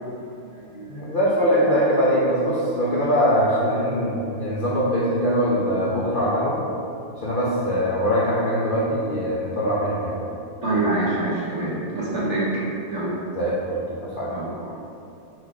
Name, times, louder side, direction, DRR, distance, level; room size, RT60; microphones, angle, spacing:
voice 1, 0.1-1.0 10.6-12.5 12.9-13.1 14.2-14.7, right 2 dB, 40° right, -7 dB, 1.5 m, -26 dB
voice 2, 0.9-6.6 7.2-10.2 13.3-14.3, equal, 50° left, -7 dB, 0.6 m, -22 dB
4.6 x 4.4 x 4.7 m, 2.6 s
omnidirectional pair, 2.1 m